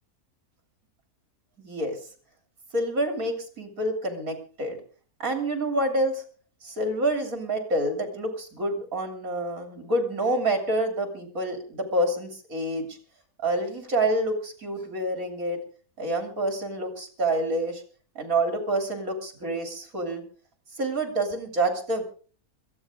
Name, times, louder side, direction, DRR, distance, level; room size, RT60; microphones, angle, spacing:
voice 1, 1.6-2.0 2.7-4.8 5.2-6.2 6.6-13.0 13.4-15.6 16.0-17.8 18.2-20.2 20.7-22.0, right 1 dB, 65° right, 5 dB, 3.5 m, -27 dB
21.5 x 15.0 x 3.7 m, 0.41 s
omnidirectional pair, 1.6 m